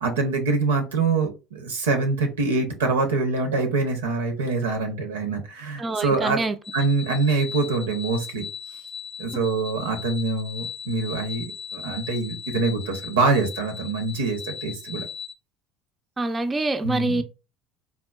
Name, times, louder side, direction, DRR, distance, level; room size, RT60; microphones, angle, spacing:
voice 1, 0.0-6.4 6.7-8.4 9.2-15.1 16.8-17.2, right 3 dB, 90° right, 0.6 m, -25 dB
voice 2, 5.8-6.6 16.2-17.2, right 2 dB, 25° right, 0.4 m, -25 dB
sound 1, 6.6-15.3, left 7 dB, 45° left, 0.5 m, -38 dB
3.5 x 2.3 x 2.2 m
hypercardioid pair, 75°, 0 cm